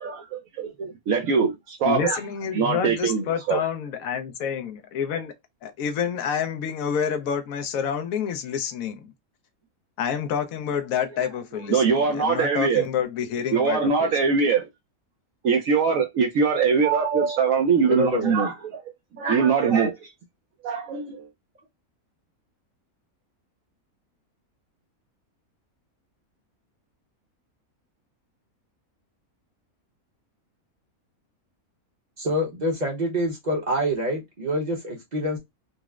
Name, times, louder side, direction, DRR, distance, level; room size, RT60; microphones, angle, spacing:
voice 1, 0.0-2.2 2.5-3.6 11.7-12.8 13.5-14.7 15.4-18.8 19.2-20.1 20.6-21.3, right 5 dB, 70° right, 1.0 m, -22 dB
voice 2, 1.8-5.3 5.6-9.1 10.0-14.1, left 7 dB, 75° left, 1.0 m, -28 dB
voice 3, 17.9-18.4 32.2-35.4, equal, 35° right, 0.8 m, -26 dB
4.0 x 2.0 x 2.3 m
omnidirectional pair, 1.5 m